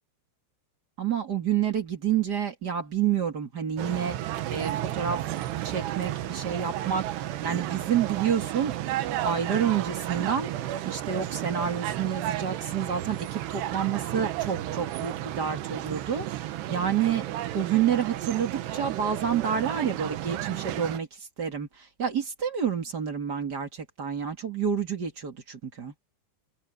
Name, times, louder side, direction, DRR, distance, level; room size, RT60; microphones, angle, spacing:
voice 1, 1.0-5.2 5.6-17.2 17.5-21.1 21.4-21.7 22.0-25.9, right 8 dB, 40° right, 1.5 m, -29 dB
sound 1, 3.8-21.0, right 13 dB, 75° right, 3.2 m, -33 dB
omnidirectional pair, 5.2 m